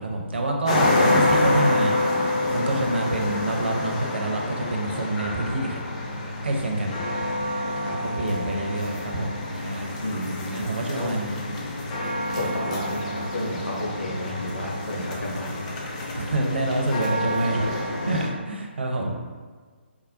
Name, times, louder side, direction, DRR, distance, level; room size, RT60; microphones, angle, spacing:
voice 1, 0.0-5.8 6.4-7.1 8.2-9.4 9.6-10.0 10.5-11.5 16.1-17.7 18.1-19.1, right 1 dB, 60° right, 1 dB, 0.7 m, -27 dB
sound 1, 0.6-18.3, left 2 dB, 30° left, 0.5 m, -27 dB
voice 2, 10.0-11.1 12.4-15.6 18.9-19.1, left 1 dB, 70° left, -3 dB, 1.1 m, -32 dB
4.7 x 2.2 x 2.5 m, 1.5 s
figure-of-eight pair, 140°, 6 cm